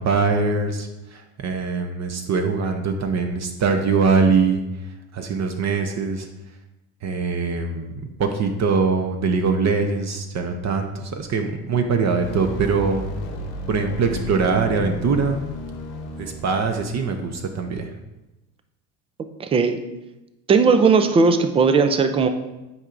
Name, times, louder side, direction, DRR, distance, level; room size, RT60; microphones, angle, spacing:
voice 1, 0.0-6.3 7.0-7.9 8.2-13.1 13.7-15.4 16.2-17.9, right 4 dB, 35° right, 5 dB, 0.7 m, -22 dB
sound 1, 12.2-17.5, left 2 dB, 75° left, 1.3 m, -34 dB
voice 2, 19.4-19.8 20.5-22.3, right 5 dB, 15° right, 8 dB, 0.3 m, -17 dB
9.8 x 4.6 x 2.5 m, 1.0 s
hypercardioid pair, 85°, 50 cm